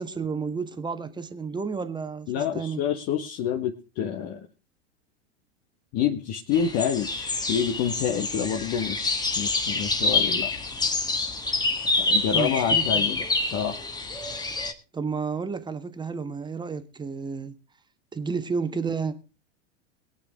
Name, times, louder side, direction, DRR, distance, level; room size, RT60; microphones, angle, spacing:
voice 1, 0.0-2.8 12.3-13.1 14.9-17.5 18.1-19.1, right 5 dB, 15° right, 1.5 m, -31 dB
voice 2, 2.3-4.5 5.9-10.5 12.0-13.8, left 8 dB, 45° left, 1.7 m, -28 dB
sound 1, 6.5-14.7, left 3 dB, 10° left, 1.7 m, -27 dB
22.0 x 8.6 x 3.7 m
hypercardioid pair, 100°, 35 cm